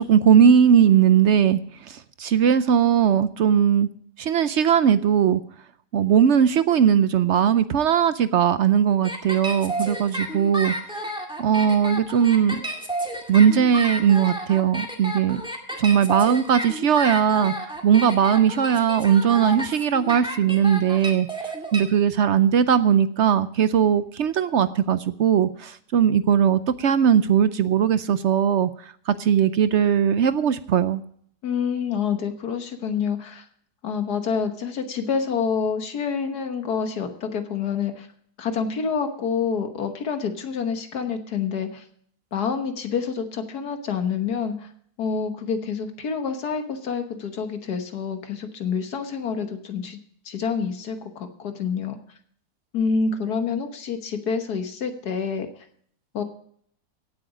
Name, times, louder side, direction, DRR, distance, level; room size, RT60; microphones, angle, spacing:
voice 1, 0.0-1.6 1.9-3.9 4.2-5.4 5.9-10.7 11.4-12.6 13.3-15.4 15.8-21.3 21.7-28.7 29.1-31.0, right 8 dB, 65° right, 13 dB, 0.7 m, -19 dB
sound 1, 9.0-21.8, right 1 dB, 5° right, 2.0 m, -31 dB
voice 2, 31.4-33.4 33.8-38.1 38.4-41.8 42.3-44.7 45.0-50.0 50.2-51.9 52.7-55.5 56.1-56.2, left 6 dB, 70° left, 7 dB, 1.7 m, -27 dB
17.0 x 8.0 x 4.9 m, 0.63 s
omnidirectional pair, 1.8 m